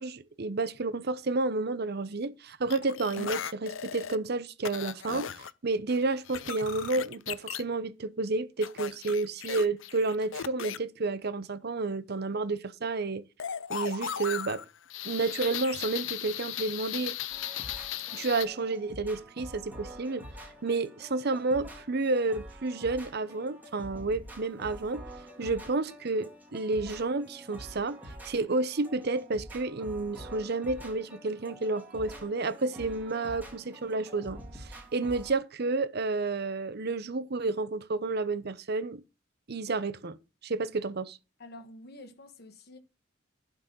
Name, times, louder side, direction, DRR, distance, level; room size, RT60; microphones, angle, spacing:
voice 1, 0.0-13.2 13.7-14.6 15.0-17.2 18.1-20.2 20.6-25.0 25.4-28.0 28.2-39.0 39.5-40.2 40.4-41.2, right 3 dB, 55° right, 0.8 m, -31 dB
sound 1, 2.7-4.2 4.6-5.5 5.9-7.6 8.6-10.8 13.4-18.5, left 9 dB, 80° left, 0.6 m, -37 dB
sound 2, 17.3-35.4, right 1 dB, 10° right, 2.7 m, -47 dB
voice 2, 41.4-42.8, left 1 dB, 55° left, 1.4 m, -48 dB
11.5 x 4.1 x 7.4 m
head